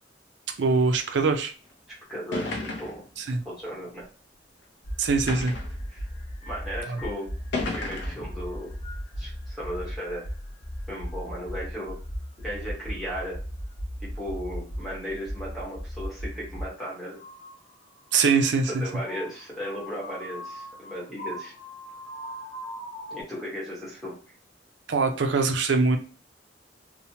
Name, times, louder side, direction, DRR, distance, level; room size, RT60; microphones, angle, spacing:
voice 1, 0.6-1.5 3.2-3.4 5.0-5.5 6.9-7.0 18.1-18.8 24.9-26.0, right 4 dB, 75° right, 5 dB, 0.4 m, -23 dB
sound 1, 1.7-1.8 2.3-3.1 4.0-4.1 5.3-5.8 6.7-6.8 7.5-8.3, left 3 dB, 75° left, 0.6 m, -32 dB
voice 2, 1.9-4.1 5.9-6.1 6.5-7.3 7.7-8.7 9.2-10.3 10.9-12.0 12.4-13.4 14.0-17.2 18.7-21.5 23.1-24.2, equal, ahead, -6 dB, 1.0 m, -36 dB
sound 2, 4.8-16.7 17.1-23.2, equal, 40° left, 0.7 m, -37 dB
3.0 x 2.0 x 2.7 m, 0.38 s
head